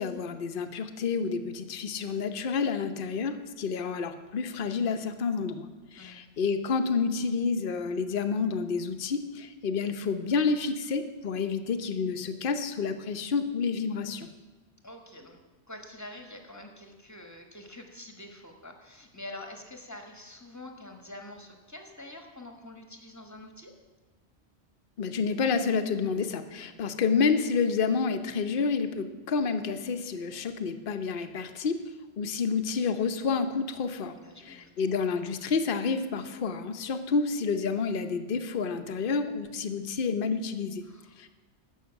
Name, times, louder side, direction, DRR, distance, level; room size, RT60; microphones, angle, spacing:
voice 1, 0.0-5.7 5.9-14.3 25.0-31.8 32.2-34.1 34.5-40.8 41.2-41.3, left 5 dB, 55° left, 8 dB, 1.0 m, -29 dB
voice 2, 6.0-6.3 14.8-15.4 15.7-23.8 26.6-26.8 34.2-34.9 40.8-41.2, left 1 dB, 15° left, 4 dB, 1.3 m, -46 dB
13.0 x 6.0 x 8.1 m, 1.2 s
omnidirectional pair, 1.1 m